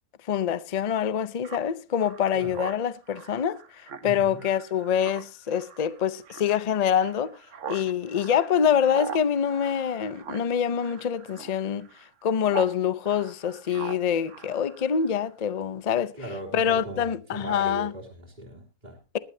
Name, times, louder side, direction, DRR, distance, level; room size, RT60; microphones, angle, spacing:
voice 1, 0.3-7.3 7.7-11.9 12.2-16.1 16.5-17.9, left 8 dB, 45° left, 0.5 m, -25 dB
Speech synthesizer, 1.4-12.8 13.0-15.3, right 6 dB, 55° right, 1.3 m, -42 dB
voice 2, 4.0-4.4 16.2-19.0, right 1 dB, 30° right, 3.2 m, -38 dB
20.0 x 12.0 x 2.8 m
omnidirectional pair, 1.6 m